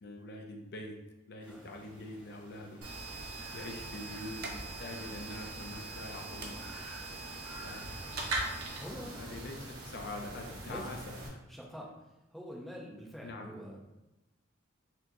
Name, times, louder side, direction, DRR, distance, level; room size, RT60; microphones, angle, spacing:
voice 1, 0.0-1.0 1.3-2.8 3.1-6.7 7.6-8.2 8.9-11.4 13.2-13.5, left 2 dB, 50° left, 3 dB, 0.5 m, -44 dB
sound 1, 1.4-8.8, right 1 dB, 25° right, 1.4 m, -54 dB
sound 2, 2.7-9.0, right 2 dB, 50° right, 0.5 m, -51 dB
sound 3, 2.8-11.3, right 2 dB, 85° right, 0.9 m, -41 dB
voice 2, 8.8-9.3 10.6-11.2 11.5-11.9 12.3-13.9, equal, ahead, -2 dB, 0.5 m, -46 dB
4.3 x 2.9 x 2.6 m, 0.95 s
head